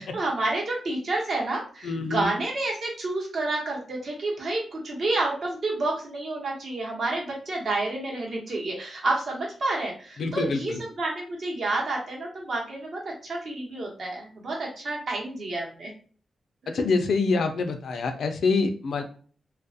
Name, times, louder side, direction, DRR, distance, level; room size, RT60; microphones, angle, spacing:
voice 1, 0.0-15.9, right 2 dB, 55° right, -2 dB, 0.9 m, -29 dB
voice 2, 1.8-2.3 10.2-10.8 16.7-19.0, left 4 dB, 70° left, 7 dB, 0.4 m, -26 dB
2.3 x 2.0 x 2.6 m, 0.42 s
wide cardioid pair, 120°, 0 cm